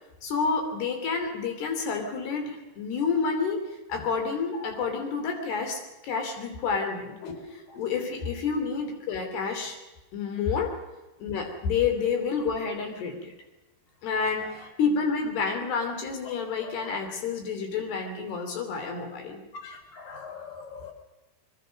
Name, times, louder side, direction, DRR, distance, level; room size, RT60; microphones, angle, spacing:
voice 1, 0.2-3.6 3.9-7.2 7.5-9.8 10.1-10.7 11.2-13.3 14.0-19.4, left 5 dB, 85° left, 4 dB, 5.2 m, -29 dB
voice 2, 16.6-17.0 19.6-20.9, left 5 dB, 60° left, 5 dB, 5.2 m, -42 dB
24.5 x 23.0 x 6.5 m, 1.1 s
omnidirectional pair, 4.5 m